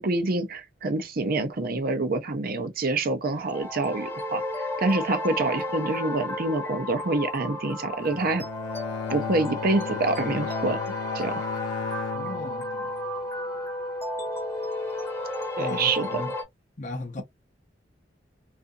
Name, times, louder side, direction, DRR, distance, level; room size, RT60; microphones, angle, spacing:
voice 1, 0.0-4.4 4.8-8.4 9.1-10.8 11.1-11.5 15.6-16.1, right 2 dB, 55° right, 0.6 m, -26 dB
sound 1, 3.3-16.4, left 1 dB, 15° left, 0.9 m, -33 dB
Bowed string instrument, 8.0-13.2, left 6 dB, 85° left, 0.3 m, -35 dB
voice 2, 12.1-12.9 15.6-16.3 16.8-17.2, left 2 dB, 45° left, 0.7 m, -36 dB
2.7 x 2.5 x 2.3 m
head